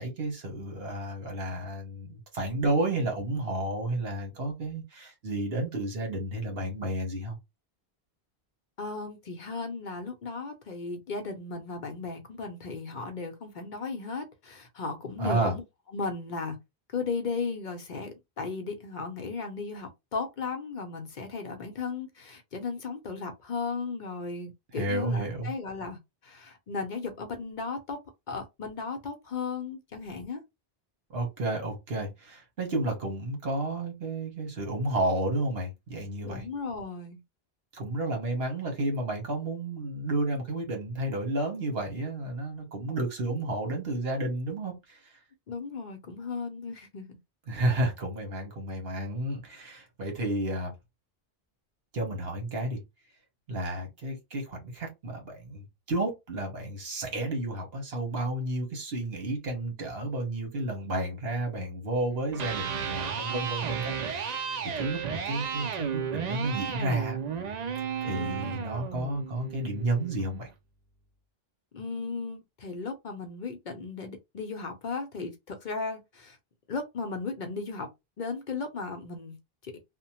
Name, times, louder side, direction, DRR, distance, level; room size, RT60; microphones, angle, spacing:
voice 1, 0.0-7.4 15.2-15.5 24.7-25.5 31.1-36.4 37.7-45.2 47.5-50.7 51.9-52.8 53.5-67.2 68.0-70.5, right 1 dB, 75° right, 1.3 m, -31 dB
voice 2, 8.8-15.6 15.9-16.6 16.9-28.0 28.3-30.4 36.2-37.2 45.5-47.2 68.0-68.4 71.7-76.4 76.7-77.9 78.2-79.4 79.6-79.7, left 4 dB, 55° left, 0.7 m, -36 dB
Electric guitar, 62.2-70.3, right 7 dB, 55° right, 0.5 m, -33 dB
2.8 x 2.1 x 2.8 m
omnidirectional pair, 1.0 m